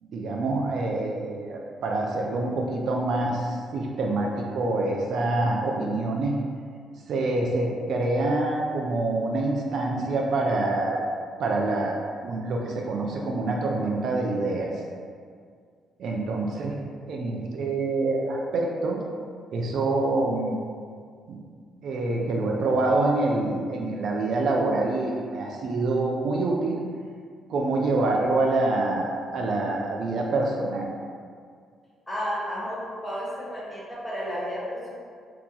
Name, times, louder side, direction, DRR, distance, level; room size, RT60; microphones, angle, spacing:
voice 1, 0.0-6.4 7.1-11.1 11.4-12.0 12.2-14.7 16.0-16.8 17.1-19.0 19.5-20.6 21.3-21.4 21.8-26.8 27.5-30.9, right 2 dB, 70° right, 0 dB, 0.4 m, -26 dB
voice 2, 32.1-34.9, equal, 10° left, -8 dB, 1.2 m, -32 dB
2.8 x 2.3 x 3.8 m, 2.1 s
cardioid pair, 90°, 0 cm